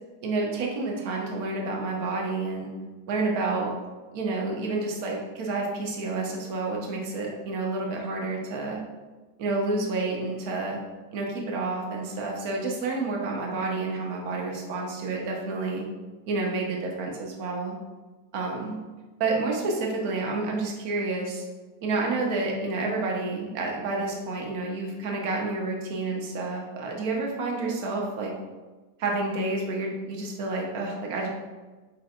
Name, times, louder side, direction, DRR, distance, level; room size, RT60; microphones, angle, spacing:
voice 1, 0.2-2.7 3.1-3.7 4.1-8.8 9.4-10.8 11.1-15.8 16.3-17.8 18.3-18.8 19.2-21.4 21.8-28.3 29.0-31.3, right 3 dB, 50° right, -1 dB, 0.9 m, -29 dB
4.4 x 3.9 x 2.4 m, 1.3 s
figure-of-eight pair, 90°, 0 cm